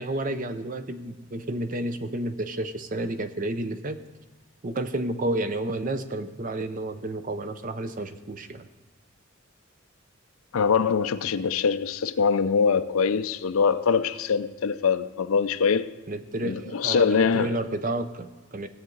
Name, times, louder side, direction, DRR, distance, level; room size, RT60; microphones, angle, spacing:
voice 1, 0.0-4.0 4.6-8.7 16.1-18.7, right 1 dB, 40° right, 0.6 m, -31 dB
voice 2, 10.5-15.9 16.4-17.6, left 6 dB, 80° left, 0.5 m, -23 dB
16.0 x 8.4 x 3.9 m
head